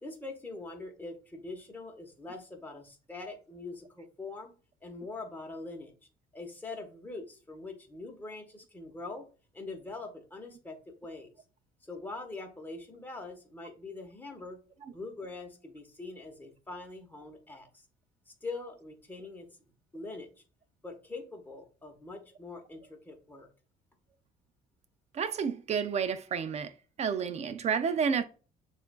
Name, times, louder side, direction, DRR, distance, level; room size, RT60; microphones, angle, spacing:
voice 1, 0.0-4.5 4.8-5.9 6.3-9.3 9.5-11.3 11.8-14.6 14.9-17.9 18.3-19.5 19.9-20.3 20.8-23.5, left 3 dB, 10° left, 1.1 m, -43 dB
voice 2, 25.1-26.7 27.0-28.2, right 6 dB, 40° right, 0.4 m, -30 dB
6.8 x 2.5 x 2.2 m
cardioid pair, 110°, 17 cm